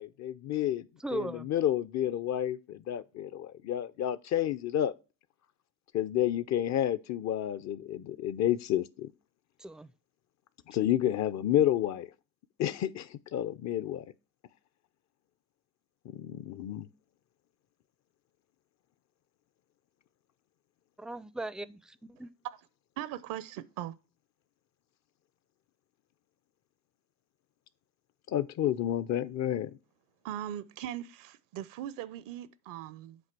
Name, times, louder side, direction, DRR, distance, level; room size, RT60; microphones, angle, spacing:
voice 1, 0.0-0.9 1.1-4.9 5.9-9.1 10.7-12.1 12.6-14.1 16.0-16.9 28.3-29.8, left 11 dB, 55° left, 0.6 m, -30 dB
voice 2, 1.0-1.5 9.6-9.9 21.0-22.3, right 2 dB, ahead, 0.4 m, -38 dB
voice 3, 23.0-24.0 30.2-33.2, right 11 dB, 75° right, 0.7 m, -40 dB
7.8 x 2.9 x 6.0 m
supercardioid pair, 70°, 33 cm